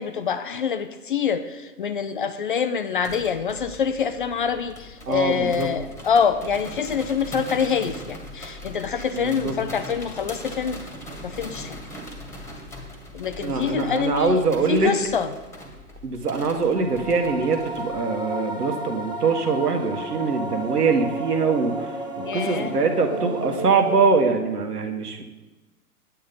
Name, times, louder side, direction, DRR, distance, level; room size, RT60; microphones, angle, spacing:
voice 1, 0.0-10.8 11.2-11.8 13.1-14.4 14.7-15.3 22.2-22.7, left 7 dB, 35° left, 10 dB, 0.4 m, -25 dB
sound 1, 3.0-18.0, equal, 5° left, 1.6 m, -40 dB
voice 2, 5.1-5.7 9.1-9.5 13.4-14.9 16.0-21.9 22.3-25.2, right 4 dB, 75° right, 5 dB, 1.6 m, -23 dB
sound 2, 16.4-24.6, right 2 dB, 10° right, 0.8 m, -33 dB
9.3 x 8.1 x 5.4 m, 1.1 s
figure-of-eight pair, 120°, 47 cm